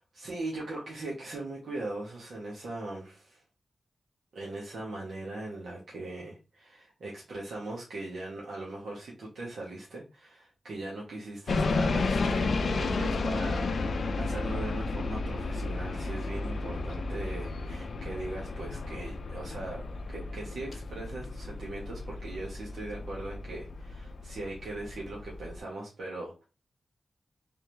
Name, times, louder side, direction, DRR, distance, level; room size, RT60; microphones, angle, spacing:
voice 1, 0.0-3.4 4.3-19.8 20.1-26.4, right 2 dB, 80° right, -4 dB, 1.3 m, -40 dB
sound 1, 11.5-25.6, left 3 dB, 60° left, 0.4 m, -32 dB
3.5 x 3.4 x 3.1 m, 0.30 s
wide cardioid pair, 165°, 0 cm